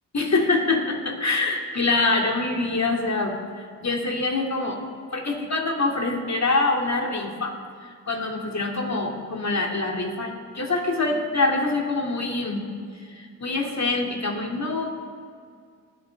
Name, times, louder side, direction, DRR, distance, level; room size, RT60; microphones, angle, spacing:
voice 1, 0.1-4.8 5.1-12.6 12.9-14.9, left 3 dB, 45° left, 1 dB, 2.5 m, -25 dB
19.5 x 10.5 x 3.4 m, 2.1 s
supercardioid pair, 40°, 38 cm